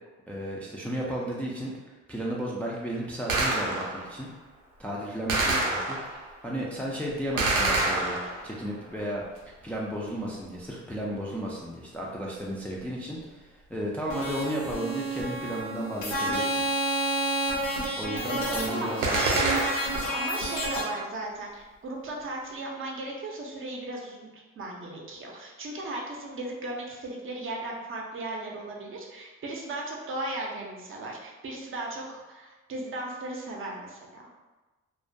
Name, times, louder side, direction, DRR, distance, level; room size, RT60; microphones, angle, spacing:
voice 1, 0.3-1.7 2.1-4.3 4.8-6.0 6.4-16.6 18.0-19.4, right 1 dB, 5° left, -4 dB, 0.3 m, -34 dB
Gunshot gunfire, 3.3-4.1 5.3-6.3 7.4-8.6 19.0-20.1, right 2 dB, 90° right, 0.5 m, -27 dB
sound 1, 14.1-20.8, right 1 dB, 75° left, 0.7 m, -30 dB
voice 2, 18.1-19.4 20.1-34.2, right 2 dB, 45° right, -1 dB, 0.5 m, -36 dB
2.3 x 2.1 x 2.6 m, 1.2 s
cardioid pair, 90°, 30 cm